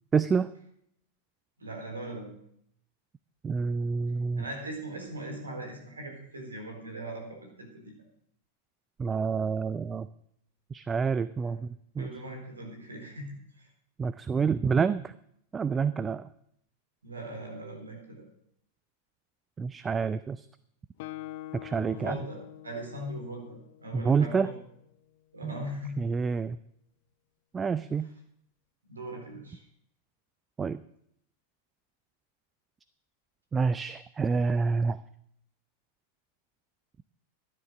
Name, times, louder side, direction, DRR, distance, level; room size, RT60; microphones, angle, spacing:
voice 1, 0.1-0.5 3.4-4.4 9.0-10.1 10.7-12.1 14.0-15.1 15.5-16.3 19.6-20.5 21.6-22.2 23.9-24.5 25.4-25.5 26.0-26.6 27.5-28.1 30.6-30.8 33.5-35.0, right 5 dB, 20° right, 15 dB, 0.4 m, -28 dB
voice 2, 1.6-2.3 4.4-7.9 11.4-11.6 12.0-13.7 17.0-18.2 21.9-22.4 22.6-23.4 23.8-24.6 25.3-26.0 28.9-29.6, right 1 dB, 75° right, 2 dB, 4.1 m, -40 dB
Guitar, 21.0-24.7, left 15 dB, 50° left, 0.5 m, -45 dB
12.5 x 9.9 x 6.4 m, 0.71 s
figure-of-eight pair, 90°, 0 cm